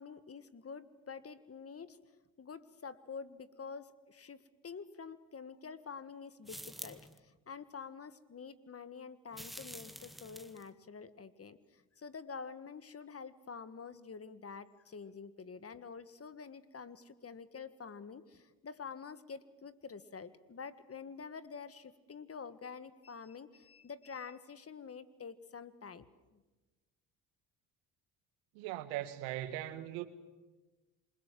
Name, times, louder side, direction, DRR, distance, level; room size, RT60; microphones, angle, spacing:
voice 1, 0.0-2.0 2.4-26.0 26.3-26.4, left 5 dB, 35° left, 1.7 m, -48 dB
sound 1, 6.4-7.2 9.3-10.7, equal, ahead, 1.7 m, -48 dB
voice 2, 28.5-30.1, right 14 dB, 85° right, 1.9 m, -39 dB
27.0 x 21.5 x 7.7 m
supercardioid pair, 70°, 43 cm